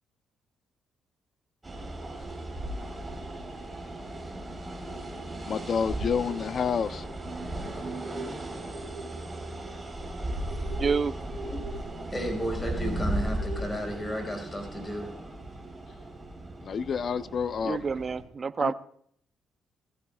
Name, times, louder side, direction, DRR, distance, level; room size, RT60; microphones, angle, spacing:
sound 1, 1.6-18.2, right 1 dB, 20° right, 4.3 m, -36 dB
voice 1, 5.5-7.0 16.6-17.8 18.6-18.7, left 6 dB, 55° left, 13 dB, 0.7 m, -29 dB
voice 2, 10.8-11.2 17.6-18.7, right 5 dB, 40° right, 13 dB, 0.7 m, -28 dB
voice 3, 11.8-15.1, equal, 20° left, 2 dB, 4.9 m, -33 dB
19.5 x 15.0 x 2.4 m, 0.63 s
cardioid pair, 90°, 0 cm